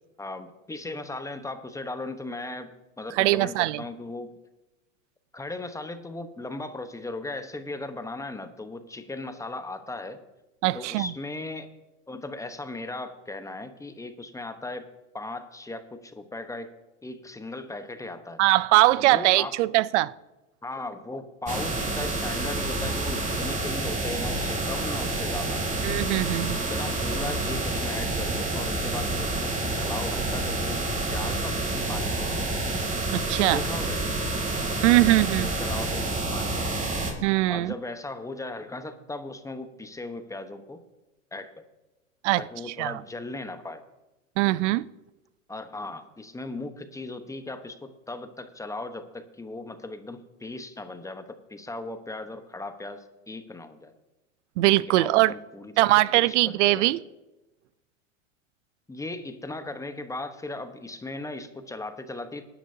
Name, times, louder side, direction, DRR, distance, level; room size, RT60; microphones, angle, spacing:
voice 1, 0.2-2.7 3.0-4.3 5.3-10.2 10.7-11.7 12.1-14.9 15.1-16.7 17.0-18.4 19.0-19.6 20.6-25.6 26.5-30.8 31.1-32.5 33.5-34.3 34.7-37.2 37.5-40.8 41.3-41.5 42.4-43.8 45.5-53.9 54.9-57.0 58.9-62.4, left 2 dB, 10° left, 1.0 m, -37 dB
voice 2, 3.2-3.8 10.6-11.1 18.4-20.1 25.8-26.6 33.1-33.6 34.8-35.5 37.2-37.7 42.2-42.4 42.8-43.0 44.4-44.9 54.6-55.3 55.8-57.0, right 18 dB, 60° right, 0.6 m, -21 dB
sound 1, 21.5-37.1, right 2 dB, 20° right, 3.0 m, -28 dB
20.0 x 10.0 x 2.8 m
hypercardioid pair, 100°, 40 cm